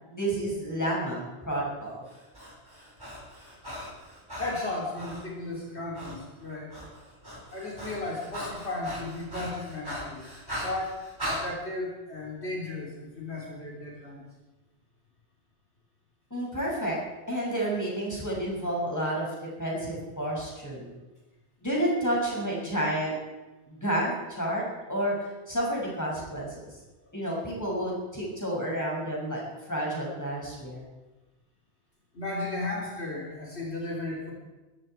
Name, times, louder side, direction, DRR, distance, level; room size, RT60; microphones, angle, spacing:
voice 1, 0.1-2.0 16.3-17.0 17.3-20.9 21.6-23.2 23.7-24.6 24.9-26.5 27.1-30.9, right 1 dB, 15° left, -4 dB, 6.4 m, -30 dB
Breathing, 2.1-5.3 5.9-6.2 6.5-11.4, equal, 20° right, 4.8 m, -39 dB
voice 2, 4.4-6.8 7.5-11.0 11.3-14.3 32.1-34.3, left 2 dB, 65° left, -3 dB, 3.7 m, -35 dB
22.0 x 14.0 x 4.6 m, 1.1 s
omnidirectional pair, 1.2 m